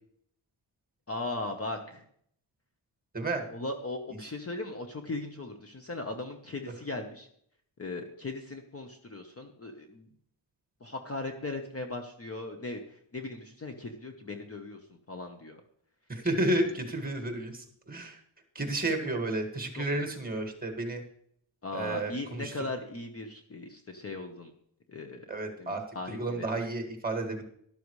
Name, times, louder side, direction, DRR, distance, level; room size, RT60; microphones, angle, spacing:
voice 1, 1.1-2.0 3.5-7.3 7.8-10.1 10.8-14.8 15.1-15.6 16.3-16.4 19.0-19.2 19.8-19.9 21.6-24.5 24.9-25.3 25.6-26.5, left 2 dB, 30° left, 5 dB, 1.0 m, -38 dB
voice 2, 16.1-18.2 18.6-21.0 21.7-22.5 25.3-25.8 26.1-27.4, right 2 dB, 20° right, 4 dB, 1.9 m, -31 dB
12.5 x 12.0 x 3.2 m, 0.66 s
wide cardioid pair, 155°, 49 cm